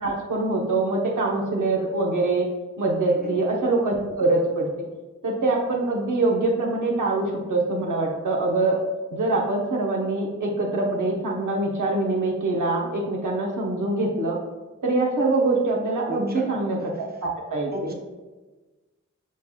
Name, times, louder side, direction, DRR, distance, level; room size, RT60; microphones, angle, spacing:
voice 1, 0.0-2.5 2.8-4.7 5.2-8.8 9.1-14.4 14.8-16.9 17.2-17.9, right 2 dB, 80° right, -1 dB, 0.7 m, -24 dB
voice 2, 16.1-16.5 17.7-17.9, right 1 dB, 30° right, 1 dB, 0.7 m, -34 dB
5.3 x 3.1 x 2.2 m, 1.2 s
cardioid pair, 45°, 30 cm